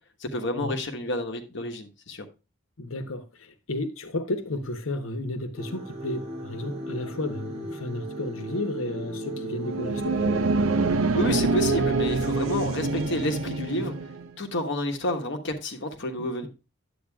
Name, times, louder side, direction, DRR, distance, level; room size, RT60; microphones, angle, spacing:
voice 1, 0.2-2.2 11.1-13.9 14.4-16.5, left 1 dB, 60° left, 1.2 m, -30 dB
voice 2, 2.8-10.2 13.7-13.9 16.2-16.5, left 2 dB, 85° left, 1.0 m, -33 dB
sound 1, 5.6-11.0, right 1 dB, 30° right, 2.0 m, -36 dB
sound 2, 9.6-14.3, right 3 dB, 90° right, 0.6 m, -25 dB
10.0 x 7.9 x 2.3 m
head